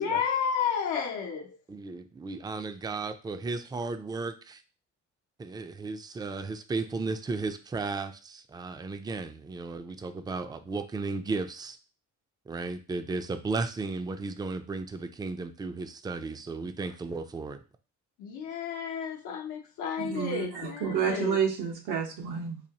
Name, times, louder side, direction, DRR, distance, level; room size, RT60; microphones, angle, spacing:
voice 1, 0.0-1.6 18.2-21.4, left 7 dB, 85° left, 0.7 m, -31 dB
voice 2, 1.7-4.6 5.4-11.8 12.5-17.6, right 3 dB, 15° right, 0.3 m, -34 dB
voice 3, 20.0-20.5 20.8-22.6, right 7 dB, 90° right, 1.0 m, -29 dB
4.1 x 2.8 x 2.8 m
cardioid pair, 90°, 30 cm